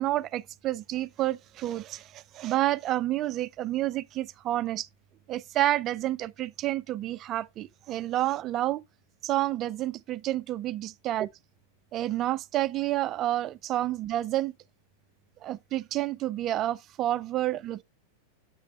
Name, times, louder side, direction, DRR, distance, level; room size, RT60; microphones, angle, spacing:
voice 1, 0.0-4.9 5.3-8.8 9.2-11.3 11.9-14.5 15.4-17.8, right 14 dB, 35° right, 0.3 m, -29 dB
7.5 x 5.8 x 3.1 m
figure-of-eight pair, 90°, 0 cm